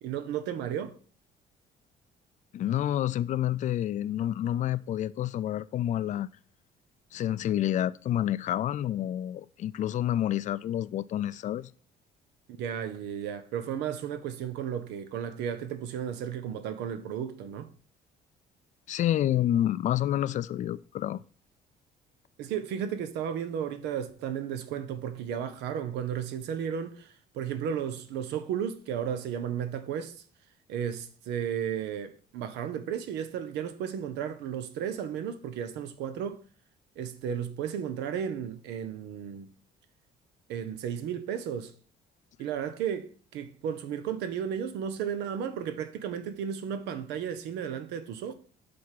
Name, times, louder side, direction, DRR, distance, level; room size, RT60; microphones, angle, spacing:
voice 1, 0.0-1.0 12.5-17.7 22.4-30.1 30.7-36.4 37.0-39.5 40.5-41.7 42.4-48.3, right 8 dB, 85° right, 0.9 m, -34 dB
voice 2, 2.5-6.3 7.1-11.7 18.9-21.2, left 12 dB, 45° left, 0.4 m, -28 dB
7.7 x 3.5 x 5.6 m
cardioid pair, 110°, 17 cm